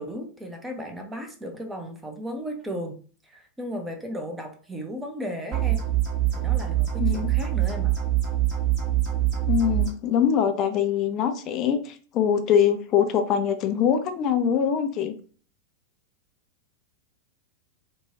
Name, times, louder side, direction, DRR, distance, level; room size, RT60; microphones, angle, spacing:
voice 1, 0.0-3.0 3.2-5.9 6.3-8.0, equal, 10° right, 4 dB, 0.6 m, -35 dB
sound 1, 5.5-9.9, right 13 dB, 35° right, 1.2 m, -24 dB
voice 2, 9.5-15.1, left 8 dB, 35° left, 7 dB, 0.4 m, -23 dB
2.8 x 2.2 x 2.8 m, 0.41 s
figure-of-eight pair, 90°, 0 cm